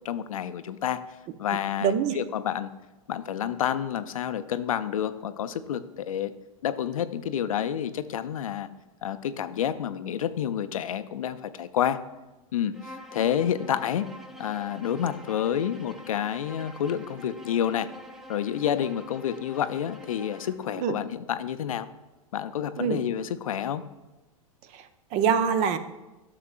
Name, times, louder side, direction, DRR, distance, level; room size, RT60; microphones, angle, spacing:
voice 1, 0.0-1.0 1.4-2.7 3.1-6.3 6.6-8.7 9.0-12.0 12.5-14.1 14.4-17.9 18.3-21.9 22.3-23.8, left 9 dB, 70° left, 12 dB, 0.5 m, -29 dB
voice 2, 1.8-2.2 20.8-20.9 22.8-23.0 24.7-25.8, right 7 dB, 40° right, 11 dB, 0.6 m, -25 dB
Bowed string instrument, 12.7-20.6, left 1 dB, ahead, 0.7 m, -46 dB
12.5 x 6.5 x 2.4 m, 1.1 s
figure-of-eight pair, 100°, 18 cm